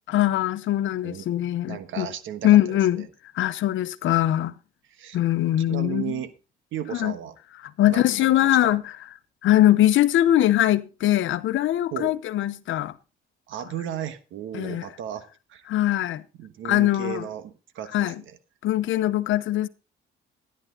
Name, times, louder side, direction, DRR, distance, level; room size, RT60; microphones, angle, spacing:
voice 1, 0.1-2.1 2.4-3.1 3.3-4.5 5.1-6.2 6.9-7.1 7.8-8.8 9.4-12.9 14.5-14.8 15.7-16.2 16.6-17.3 17.9-18.2 18.6-19.7, left 13 dB, 75° left, 0.8 m, -21 dB
voice 2, 1.7-2.8 4.9-5.2 5.7-6.3 6.7-7.4 7.9-8.8 11.9-12.2 13.5-15.7 16.4-18.3, right 9 dB, 80° right, 1.4 m, -35 dB
13.5 x 10.5 x 3.9 m
cardioid pair, 90°, 20 cm